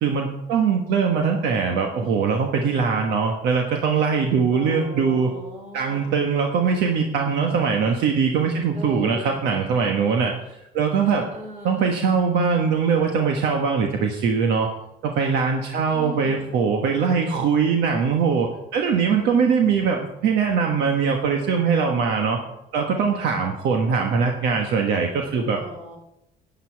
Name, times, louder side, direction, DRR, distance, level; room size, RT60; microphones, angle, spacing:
voice 1, 0.0-5.3 5.7-10.3 10.7-11.3 11.6-14.7 15.0-22.4 22.7-25.6, right 5 dB, 80° right, 2 dB, 1.3 m, -21 dB
voice 2, 4.5-6.1 8.7-9.5 11.0-12.0 15.9-16.5 19.1-19.8 25.5-26.0, right 1 dB, 45° right, 1 dB, 4.0 m, -38 dB
11.0 x 9.4 x 4.6 m, 0.83 s
cardioid pair, 110°, 17 cm